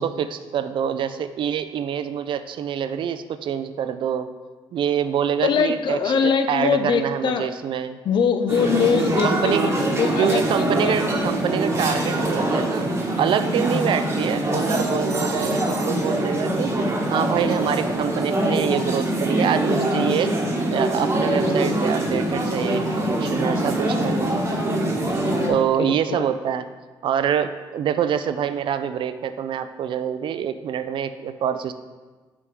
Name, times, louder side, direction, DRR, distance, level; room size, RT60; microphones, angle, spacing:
voice 1, 0.0-4.3 4.7-8.0 9.2-9.7 10.2-16.7 17.1-20.3 20.7-24.4 25.5-26.7 27.0-31.7, right 9 dB, 60° right, 11 dB, 0.3 m, -25 dB
voice 2, 5.4-7.5 8.0-11.3 13.7-13.9 25.3-26.3, left 6 dB, 55° left, 9 dB, 0.5 m, -23 dB
sound 1, 8.5-25.5, right 1 dB, 25° right, 1.1 m, -23 dB
6.0 x 3.5 x 4.5 m, 1.3 s
cardioid pair, 80°, 10 cm